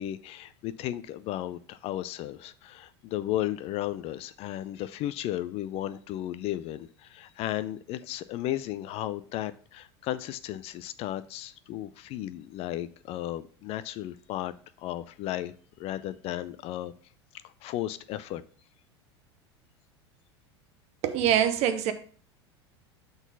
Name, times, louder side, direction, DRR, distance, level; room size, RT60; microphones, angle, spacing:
voice 1, 0.0-16.9 17.4-18.4, left 13 dB, 45° left, 0.4 m, -34 dB
voice 2, 21.0-21.9, right 10 dB, 50° right, 0.9 m, -24 dB
6.0 x 4.0 x 5.2 m
hypercardioid pair, 90°, 14 cm